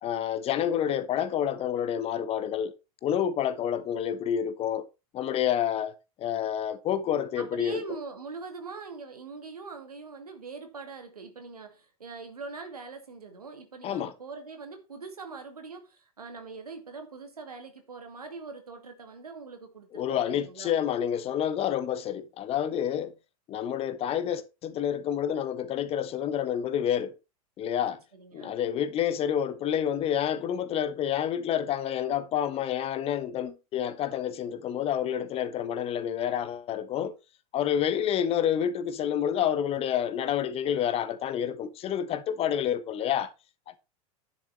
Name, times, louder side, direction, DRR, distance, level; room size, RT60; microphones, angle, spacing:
voice 1, 0.0-2.7 3.0-4.8 5.1-7.8 13.8-14.1 19.9-23.1 23.5-27.1 27.6-28.0 28.3-37.1 37.5-43.3, left 9 dB, 30° left, 1.1 m, -28 dB
voice 2, 7.4-20.7 28.1-28.6, right 4 dB, 75° right, 2.3 m, -42 dB
10.5 x 7.4 x 4.3 m
figure-of-eight pair, 85°, 19 cm